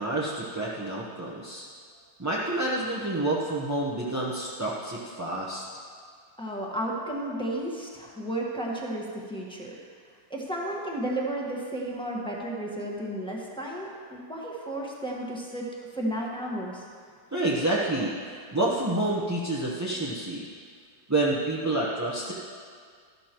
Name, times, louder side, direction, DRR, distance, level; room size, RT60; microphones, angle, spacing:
voice 1, 0.0-1.7 2.2-5.6 17.3-20.4 21.1-22.3, right 2 dB, 15° right, -6 dB, 0.7 m, -28 dB
voice 2, 6.4-9.7 10.3-15.7 15.9-16.8, right 1 dB, 5° left, -4 dB, 1.3 m, -33 dB
13.0 x 12.0 x 3.0 m, 2.1 s
omnidirectional pair, 1.8 m